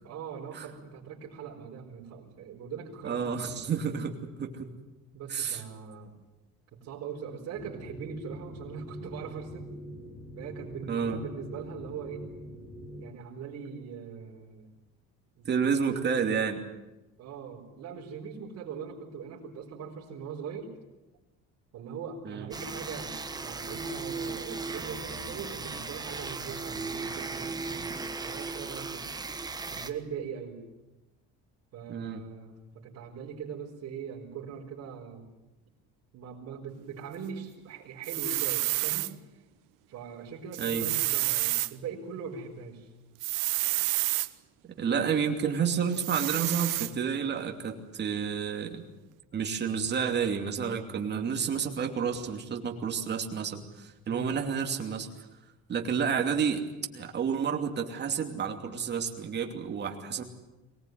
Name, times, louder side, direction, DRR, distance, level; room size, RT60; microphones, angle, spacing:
voice 1, 0.0-3.3 5.1-6.1 6.7-9.7 10.4-12.3 13.0-14.8 15.4-16.0 17.2-20.7 21.7-29.1 29.7-30.6 31.7-35.3 36.1-39.4 39.9-42.9 54.1-54.4, right 6 dB, 50° right, -5 dB, 4.8 m, -41 dB
voice 2, 3.0-4.7 5.3-5.6 10.9-11.2 15.4-16.6 22.2-22.5 31.9-32.2 40.6-40.9 44.8-48.8 49.3-55.1 55.7-56.6 56.9-60.2, right 6 dB, 35° right, 3 dB, 2.8 m, -30 dB
sound 1, 7.5-13.1, equal, 35° left, 6.6 m, -44 dB
sound 2, 22.5-29.9, right 4 dB, 10° right, 1.2 m, -37 dB
sound 3, 38.0-39.1 40.5-41.7 43.2-44.3 45.9-46.9, right 20 dB, 85° right, 1.0 m, -29 dB
23.5 x 19.5 x 9.4 m, 1.0 s
cardioid pair, 150°, 31 cm